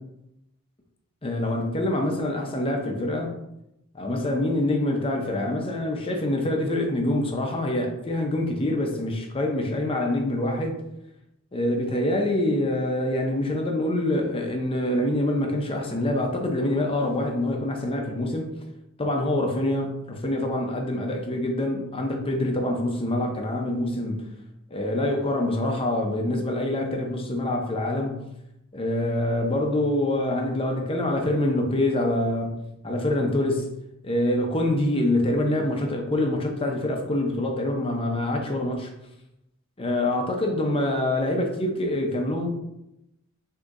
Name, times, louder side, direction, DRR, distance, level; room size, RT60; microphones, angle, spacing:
voice 1, 1.2-3.3 3.9-10.8 11.5-18.5 19.0-24.3 24.7-28.2 28.7-33.7 34.0-38.9 39.8-42.5, left 1 dB, 25° left, 2 dB, 0.7 m, -25 dB
6.2 x 2.8 x 2.5 m, 0.86 s
head